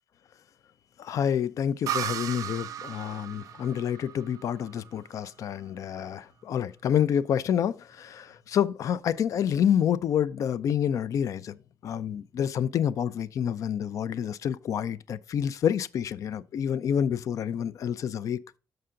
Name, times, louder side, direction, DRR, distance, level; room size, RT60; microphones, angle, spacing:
voice 1, 1.0-11.6 11.8-18.4, left 9 dB, 60° left, 0.4 m, -28 dB
sound 1, 1.9-5.4, right 10 dB, 70° right, 0.4 m, -36 dB
6.6 x 5.6 x 3.7 m
cardioid pair, 120°, 6 cm